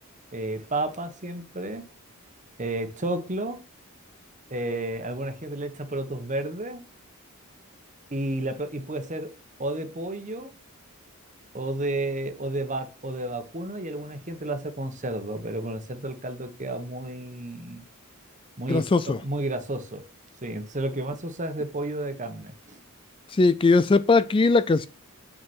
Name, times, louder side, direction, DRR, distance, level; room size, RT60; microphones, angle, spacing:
voice 1, 0.3-1.9 2.6-3.6 4.5-6.9 8.1-9.3 9.6-10.5 11.5-17.8 18.6-20.0 20.4-22.8, right 2 dB, 35° right, 1.3 m, -31 dB
voice 2, 18.7-19.2 23.3-24.9, left 3 dB, 25° left, 0.3 m, -20 dB
7.7 x 6.4 x 4.4 m
head